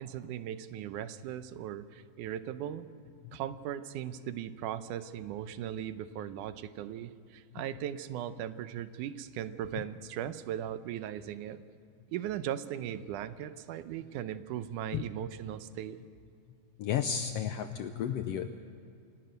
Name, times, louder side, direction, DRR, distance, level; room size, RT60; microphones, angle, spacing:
voice 1, 0.0-2.9 3.3-11.6 12.1-16.0, right 10 dB, 85° right, 12 dB, 2.3 m, -38 dB
voice 2, 16.8-18.5, left 8 dB, 75° left, 8 dB, 1.4 m, -32 dB
28.0 x 12.0 x 9.2 m, 2.6 s
omnidirectional pair, 3.5 m